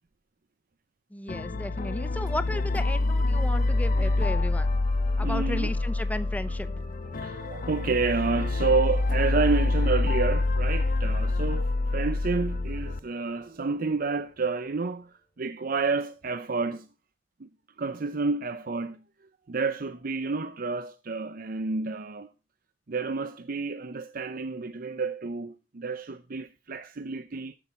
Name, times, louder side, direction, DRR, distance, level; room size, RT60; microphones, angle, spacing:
voice 1, 1.1-4.7 5.2-6.7, left 1 dB, 10° left, 0.7 m, -34 dB
sound 1, 1.3-13.0, left 2 dB, 50° left, 0.5 m, -26 dB
sound 2, 3.6-14.9, left 2 dB, 25° left, 2.2 m, -52 dB
voice 2, 5.2-5.7 7.1-16.9 17.4-17.5 17.8-19.0 19.5-22.3 22.9-27.6, right 4 dB, 50° right, 0.7 m, -30 dB
13.0 x 8.3 x 4.3 m
head